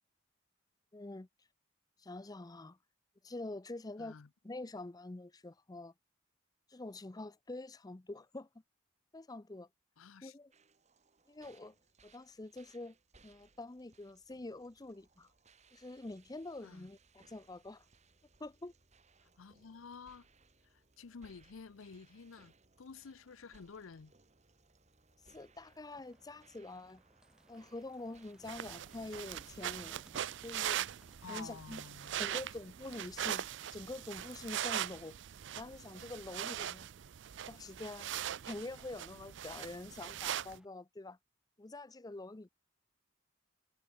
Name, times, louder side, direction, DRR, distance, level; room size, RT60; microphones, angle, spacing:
voice 1, 0.9-1.3 2.0-2.8 3.2-4.1 4.4-5.9 6.7-8.5 9.1-9.7 10.2-10.5 11.3-11.8 12.0-12.9 13.2-15.3 15.7-17.9 18.4-18.7 25.3-27.0 27.5-30.0 30.4-30.9 31.3-31.8 32.2-35.2 35.6-36.9 37.5-38.1 38.5-41.2 41.6-42.5, left 2 dB, 20° left, 0.5 m, -46 dB
voice 2, 4.0-4.3 10.0-10.4 16.6-16.9 19.4-20.3 20.6-24.1 31.2-32.2, left 5 dB, 85° left, 0.6 m, -51 dB
sound 1, 10.5-30.0, right 4 dB, 35° right, 2.2 m, -67 dB
sound 2, 25.9-40.7, equal, 5° right, 5.4 m, -68 dB
sound 3, 28.4-40.6, right 10 dB, 60° right, 0.5 m, -41 dB
head